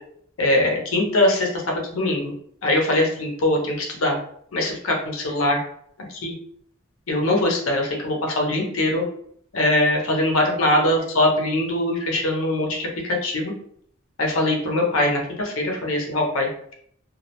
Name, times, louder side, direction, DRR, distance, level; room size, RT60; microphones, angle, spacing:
voice 1, 0.4-2.3 2.6-4.2 4.5-5.6 6.2-6.3 7.1-9.0 9.5-13.5 14.2-16.5, left 1 dB, 80° left, 0 dB, 0.6 m, -22 dB
2.2 x 2.1 x 2.7 m, 0.64 s
head